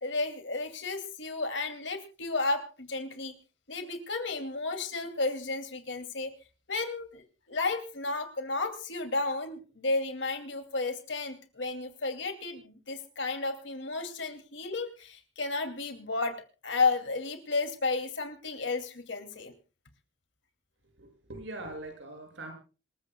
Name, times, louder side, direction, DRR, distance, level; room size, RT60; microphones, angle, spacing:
voice 1, 0.0-3.4 3.7-6.3 6.7-16.4 16.6-19.5, left 3 dB, 80° left, 7 dB, 2.7 m, -32 dB
voice 2, 21.0-22.5, right 2 dB, 90° right, 4 dB, 6.8 m, -42 dB
26.5 x 14.5 x 2.3 m, 0.34 s
head